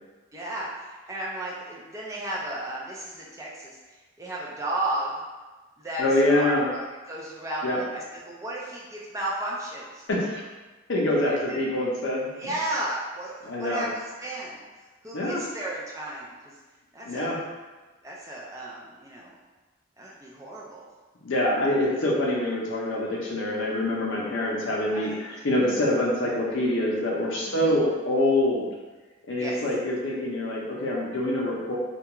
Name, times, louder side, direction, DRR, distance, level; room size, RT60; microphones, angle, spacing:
voice 1, 0.3-3.8 4.2-5.1 5.8-10.0 11.3-11.6 12.4-14.6 15.0-16.5 16.9-17.3 18.0-19.3 20.0-20.8 24.9-25.2 27.5-27.8 29.4-29.5, right 1 dB, 15° right, -5 dB, 0.4 m, -34 dB
voice 2, 6.0-6.7 7.6-7.8 10.1-10.4 10.9-12.3 13.4-13.9 15.1-15.4 17.0-17.4 21.2-28.7 29.3-31.8, left 1 dB, 70° left, -3 dB, 0.6 m, -25 dB
2.3 x 2.2 x 2.9 m, 1.2 s
head